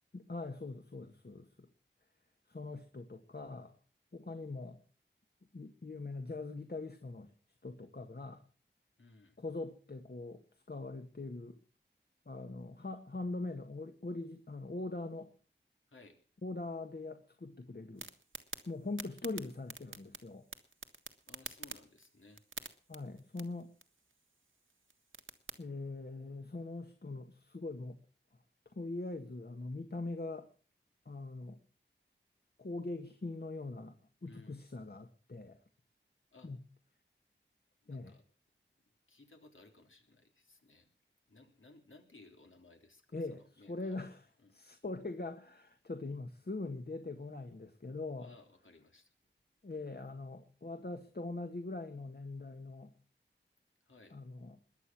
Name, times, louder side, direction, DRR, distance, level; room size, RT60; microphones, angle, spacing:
voice 1, 0.1-1.7 2.5-3.7 4.1-4.8 5.5-7.3 7.6-8.4 9.4-10.4 10.7-11.6 12.3-15.3 16.4-18.1 18.7-20.5 22.9-23.7 25.6-28.0 28.7-30.5 31.1-31.6 32.6-35.6 36.4-36.6 37.9-38.2 43.1-48.3 49.6-52.9 54.1-54.6, left 2 dB, 55° left, 6 dB, 1.7 m, -42 dB
voice 2, 9.0-9.4 15.9-16.2 21.3-22.4 34.2-34.6 36.3-36.5 37.8-38.2 39.1-40.9 41.3-44.0 44.4-44.6 48.2-49.1 53.8-54.2, left 3 dB, 90° left, 4 dB, 3.4 m, -60 dB
sound 1, 18.0-25.6, right 4 dB, 85° right, 1.7 m, -50 dB
21.0 x 8.6 x 6.1 m, 0.41 s
wide cardioid pair, 55°, 20 cm